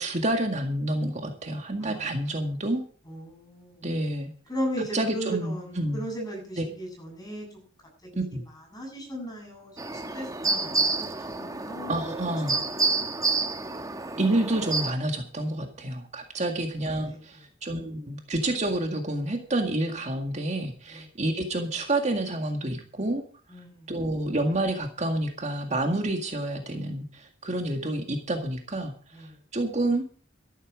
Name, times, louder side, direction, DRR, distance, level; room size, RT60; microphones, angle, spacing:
voice 1, 0.0-2.8 3.8-4.3 4.9-6.0 6.6-6.7 8.1-8.4 11.9-12.6 13.8-13.9 14.2-23.2 23.9-30.0, right 1 dB, 40° right, 4 dB, 1.9 m, -29 dB
voice 2, 3.1-3.9 4.5-7.5 8.1-8.2 8.7-12.6 17.0-17.2 20.9-21.1 23.5-23.9 27.6-27.8 29.1-29.4, equal, 20° left, 1 dB, 8.0 m, -37 dB
sound 1, 9.8-14.9, right 3 dB, 20° right, 1.1 m, -29 dB
13.0 x 12.5 x 5.0 m, 0.43 s
head